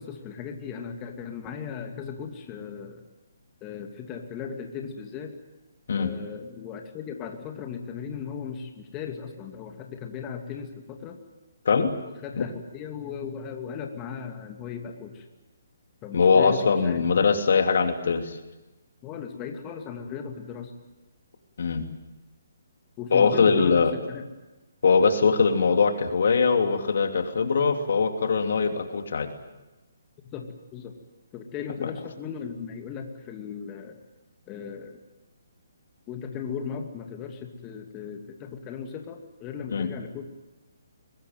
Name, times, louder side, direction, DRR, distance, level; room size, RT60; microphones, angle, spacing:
voice 1, 0.0-3.0 3.6-5.3 5.9-11.2 12.2-15.3 16.0-17.3 19.0-20.7 23.0-24.2 30.3-30.9 31.3-34.0 34.5-35.0 36.1-40.3, left 6 dB, 25° left, 4 dB, 2.6 m, -37 dB
voice 2, 16.1-18.4 21.6-21.9 23.1-23.9 24.8-29.3 39.7-39.9, left 5 dB, 65° left, 7 dB, 3.0 m, -21 dB
23.5 x 20.0 x 9.4 m, 1.1 s
hypercardioid pair, 145°, 0 cm